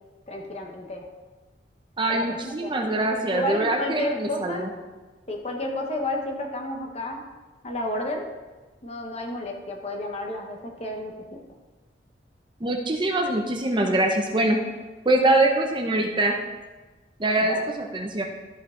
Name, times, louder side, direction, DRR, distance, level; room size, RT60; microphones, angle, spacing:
voice 1, 0.3-1.0 2.1-2.9 3.3-4.7 5.3-7.2 7.6-8.2 8.8-11.4 17.4-17.6, left 1 dB, 35° left, 1 dB, 1.2 m, -31 dB
voice 2, 2.0-4.7 12.6-14.6 15.0-16.4 17.2-18.2, right 2 dB, 25° right, 2 dB, 0.8 m, -23 dB
13.0 x 5.7 x 3.8 m, 1.3 s
head